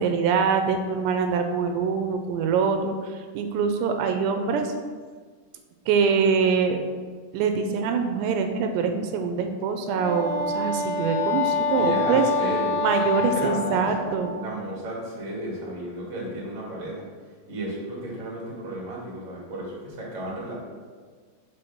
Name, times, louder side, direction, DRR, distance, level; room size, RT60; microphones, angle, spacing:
voice 1, 0.0-4.7 5.9-6.8 7.3-12.2 12.8-14.4, right 5 dB, 80° right, 6 dB, 2.6 m, -24 dB
Wind instrument woodwind instrument, 9.8-14.5, left 3 dB, 80° left, 2.6 m, -27 dB
voice 2, 11.7-12.8 13.3-14.1 14.4-17.1 17.5-20.6, right 1 dB, 45° right, -4 dB, 0.9 m, -33 dB
6.3 x 4.8 x 6.0 m, 1.5 s
omnidirectional pair, 5.1 m